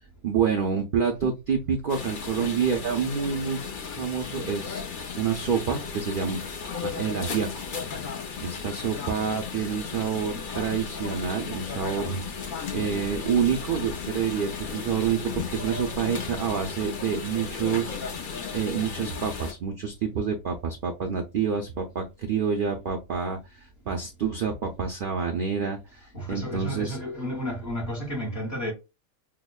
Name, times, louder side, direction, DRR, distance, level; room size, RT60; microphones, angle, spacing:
voice 1, 0.2-3.6 3.9-4.9 5.2-6.4 6.8-8.0 8.4-12.1 12.7-18.2 18.5-27.0, right 6 dB, 80° right, 0.4 m, -28 dB
sound 1, 1.9-19.5, left 5 dB, 65° left, 0.5 m, -35 dB
voice 2, 26.1-28.7, equal, 45° left, 1.2 m, -32 dB
5.7 x 2.1 x 2.3 m
omnidirectional pair, 1.5 m